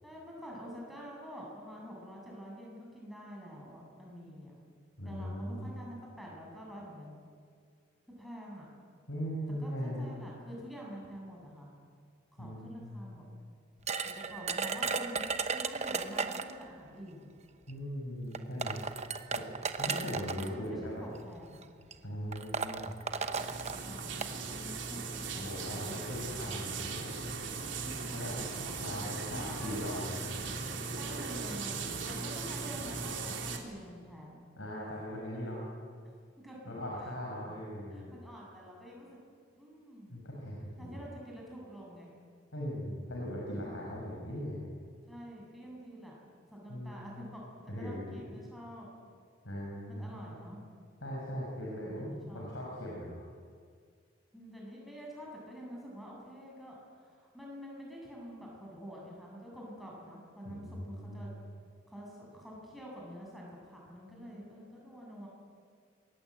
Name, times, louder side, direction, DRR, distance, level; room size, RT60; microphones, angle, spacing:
voice 1, 0.0-4.6 5.0-7.1 8.1-8.7 9.6-11.7 12.4-13.3 14.0-17.3 19.8-21.7 23.8-26.0 27.5-29.0 29.3-29.9 30.9-34.5 36.4-36.6 37.9-39.1 39.6-40.2 40.8-42.1 45.1-46.2 46.5-47.4 47.8-48.9 49.9-50.6 52.0-52.4 54.3-61.3 61.9-65.3, equal, ahead, -3 dB, 7.7 m, -47 dB
voice 2, 5.0-5.7 9.1-10.1 12.4-13.1 17.7-18.8 19.3-19.4 19.8-21.0 22.0-22.9 25.3-27.0 28.1-28.3 28.8-30.5 34.6-35.6 36.6-38.1 40.1-40.9 42.5-44.7 46.7-47.1 47.7-48.2 49.4-50.3 51.0-53.2 60.4-61.4, equal, 80° left, -3 dB, 6.4 m, -39 dB
sound 1, 13.9-16.6 17.7-17.8 18.3-20.5 21.4-21.6 21.9-22.0 22.3-24.3, right 4 dB, 35° right, 1.0 m, -35 dB
sound 2, 23.3-33.6, right 4 dB, 70° right, 3.3 m, -38 dB
26.0 x 21.5 x 9.2 m, 2.1 s
head